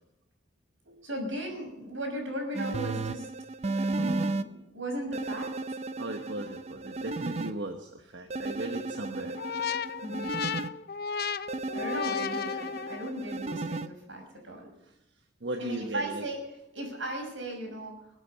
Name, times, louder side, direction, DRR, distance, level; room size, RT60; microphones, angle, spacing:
voice 1, 1.0-3.3 3.9-5.5 10.0-10.4 11.7-14.7 15.6-16.4 16.7-17.9, right 1 dB, 90° right, 2 dB, 6.0 m, -36 dB
sound 1, 2.5-4.4 5.1-7.5 8.3-10.7 11.5-13.9, right 3 dB, 35° right, 0.6 m, -34 dB
voice 2, 6.0-9.4 14.8-14.9 15.4-16.2, right 1 dB, 70° right, 4 dB, 1.2 m, -37 dB
sound 2, 9.4-13.3, left 7 dB, 55° left, 0.5 m, -34 dB
21.0 x 8.6 x 6.8 m, 0.84 s
head